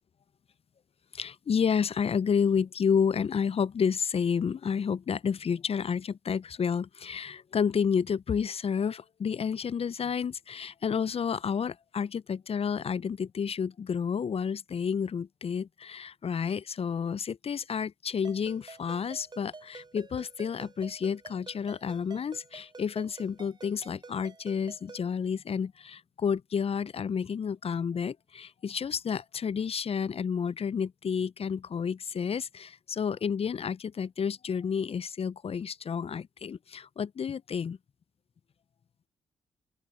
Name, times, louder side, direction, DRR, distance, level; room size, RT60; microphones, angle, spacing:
voice 1, 1.1-37.8, left 6 dB, 45° left, 0.7 m, -30 dB
Ringtone, 18.2-25.1, right 3 dB, 35° right, 3.4 m, -49 dB
open air
hypercardioid pair, 45°, 14 cm